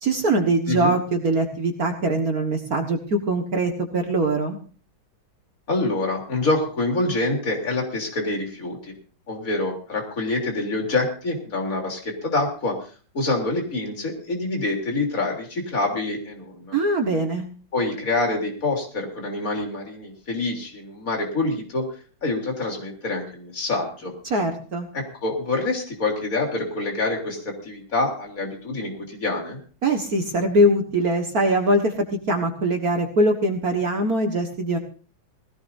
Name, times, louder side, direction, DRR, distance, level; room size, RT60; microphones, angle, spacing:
voice 1, 0.0-4.6 16.7-17.5 24.3-24.9 29.8-34.8, right 1 dB, 50° right, 4 dB, 1.9 m, -22 dB
voice 2, 5.7-8.8 9.3-12.8 13.1-16.8 17.7-21.9 22.2-24.1 24.9-29.6, left 2 dB, 45° left, 1 dB, 3.8 m, -26 dB
20.0 x 17.0 x 2.7 m, 0.39 s
omnidirectional pair, 2.2 m